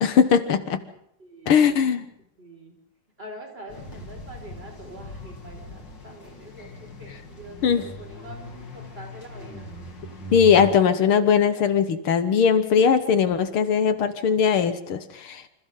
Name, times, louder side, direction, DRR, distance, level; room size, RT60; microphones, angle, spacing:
voice 1, 0.0-0.8 1.5-2.1 7.6-7.9 10.3-15.4, left 7 dB, 75° left, 10 dB, 2.2 m, -20 dB
voice 2, 1.2-2.0 2.4-2.7 3.2-9.7, right 1 dB, 25° right, 1 dB, 5.8 m, -44 dB
sound 1, 3.7-10.7, equal, 55° left, 3.5 m, -40 dB
28.0 x 26.5 x 3.9 m, 0.72 s
omnidirectional pair, 2.4 m